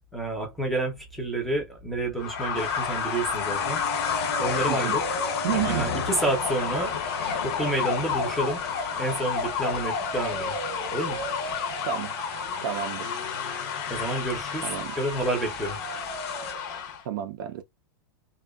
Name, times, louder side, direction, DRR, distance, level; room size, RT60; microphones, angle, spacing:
voice 1, 0.1-3.8 4.4-5.0 5.6-7.0 7.4-8.6 9.0-10.5 10.9-11.2 13.9-15.8, right 2 dB, ahead, 0.6 m, -29 dB
sound 1, 2.1-16.8, right 4 dB, 80° right, 0.7 m, -40 dB
sound 2, 2.2-17.0, left 7 dB, 45° left, 0.6 m, -31 dB
sound 3, 2.6-16.5, left 6 dB, 80° left, 0.7 m, -37 dB
voice 2, 5.4-5.9 11.8-12.1 12.6-13.1 14.6-14.9 17.0-17.6, right 11 dB, 50° right, 0.4 m, -30 dB
2.6 x 2.2 x 2.2 m
supercardioid pair, 160°, 13 cm